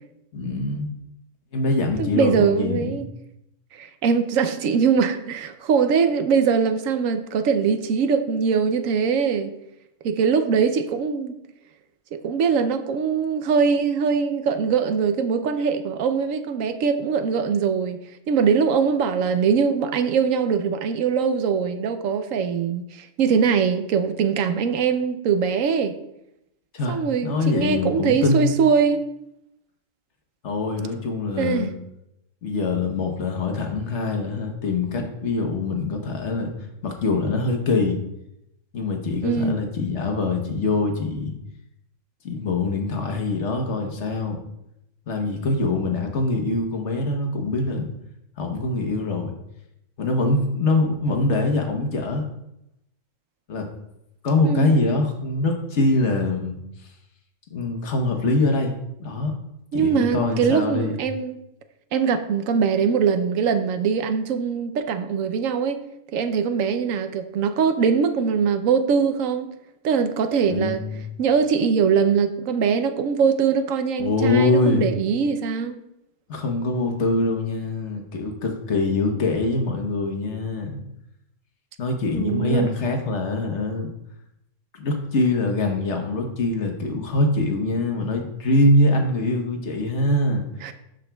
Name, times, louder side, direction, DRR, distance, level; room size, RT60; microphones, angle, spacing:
voice 1, 0.3-0.9 1.5-3.0 26.7-28.5 30.4-31.7 32.4-36.5 36.8-38.0 38.7-41.3 42.2-44.4 45.1-47.9 48.4-49.3 50.0-52.2 53.5-53.7 54.2-56.6 57.5-59.3 59.7-61.0 70.5-71.1 74.0-74.8 76.3-80.8 81.8-83.9 84.7-90.4, left 2 dB, 60° left, 3 dB, 1.3 m, -23 dB
voice 2, 2.0-3.1 3.7-9.5 10.0-11.3 12.1-18.0 18.3-25.9 26.9-29.0 31.4-31.7 39.2-39.6 54.4-54.7 59.7-61.3 61.9-65.8 66.1-69.5 69.8-70.8 71.2-75.8 82.1-82.7 90.6-90.7, right 6 dB, 80° right, 9 dB, 1.0 m, -22 dB
11.5 x 5.1 x 2.3 m, 0.82 s
omnidirectional pair, 1.3 m